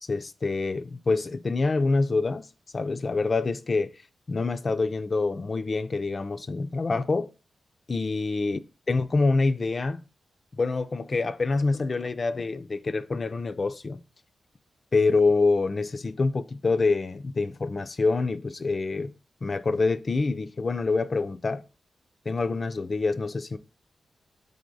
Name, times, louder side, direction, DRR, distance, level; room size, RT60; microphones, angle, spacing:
voice 1, 0.0-2.5 2.7-3.9 4.3-7.3 7.9-8.6 8.9-10.0 10.6-14.0 14.9-19.1 19.4-21.6 22.3-23.6, left 3 dB, 45° left, 0.4 m, -26 dB
3.7 x 3.5 x 3.8 m
cardioid pair, 50°, 0 cm